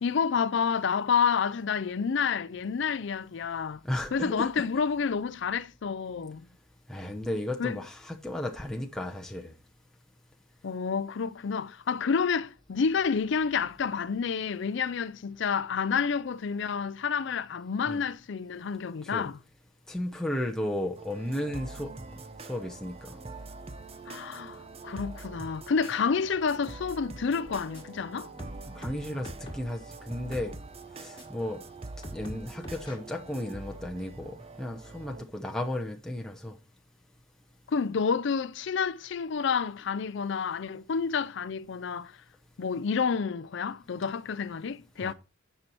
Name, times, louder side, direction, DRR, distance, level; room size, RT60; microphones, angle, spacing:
voice 1, 0.0-3.8 4.1-6.4 7.6-7.8 10.6-19.4 24.1-28.3 37.7-42.1 42.6-45.1, left 6 dB, 65° left, 0.4 m, -29 dB
voice 2, 3.8-4.7 6.9-9.5 17.9-18.0 19.0-19.3 19.9-21.9 22.4-23.1 28.8-30.5 30.9-31.6 32.1-36.6 45.0-45.1, left 1 dB, 5° left, 0.9 m, -34 dB
sound 1, 21.0-35.2, right 3 dB, 30° right, 0.7 m, -44 dB
sound 2, 27.4-28.0 28.4-29.8 30.3-30.5 31.2-31.3 32.0-33.0, equal, 25° left, 1.6 m, -43 dB
9.7 x 5.6 x 4.5 m
head